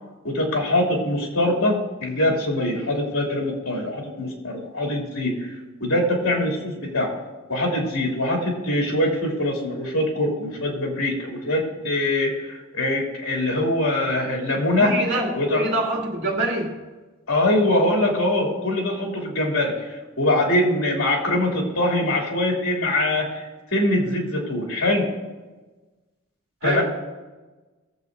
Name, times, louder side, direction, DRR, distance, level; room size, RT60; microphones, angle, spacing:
voice 1, 0.2-5.5 5.8-7.1 7.5-14.9 15.4-15.7 17.3-19.7 20.2-25.1 26.6-26.8, left 1 dB, 80° left, -1 dB, 2.9 m, -23 dB
voice 2, 14.8-16.7 26.6-26.8, right 1 dB, 60° right, -2 dB, 2.6 m, -25 dB
21.5 x 7.7 x 2.7 m, 1.2 s
head